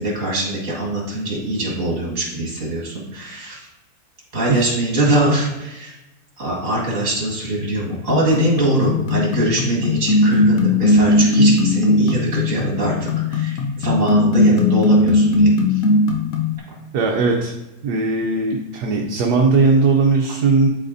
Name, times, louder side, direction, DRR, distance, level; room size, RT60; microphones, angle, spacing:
voice 1, 0.0-3.7 4.3-5.9 6.4-15.8, right 1 dB, 50° right, -3 dB, 2.3 m, -22 dB
sound 1, 8.1-16.6, left 2 dB, 60° left, 1.1 m, -17 dB
voice 2, 16.9-17.5 17.8-20.7, right 4 dB, 75° right, 1 dB, 1.3 m, -18 dB
12.0 x 4.1 x 2.6 m, 0.97 s
omnidirectional pair, 1.8 m